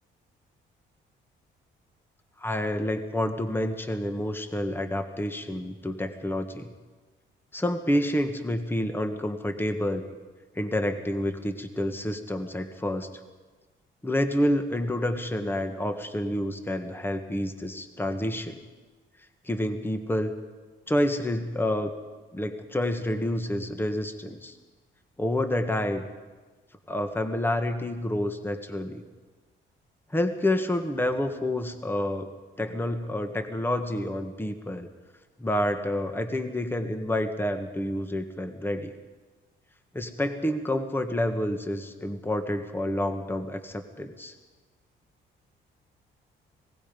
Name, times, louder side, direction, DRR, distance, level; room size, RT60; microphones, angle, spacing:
voice 1, 2.4-6.7 7.5-10.0 10.5-13.1 14.0-18.6 19.4-20.3 20.9-21.9 22.3-24.6 25.2-26.1 26.9-29.0 30.1-32.3 32.6-34.9 35.4-38.9 39.9-44.3, left 1 dB, 10° left, 7 dB, 1.7 m, -28 dB
26.0 x 19.0 x 5.4 m, 1.3 s
cardioid pair, 90°, 20 cm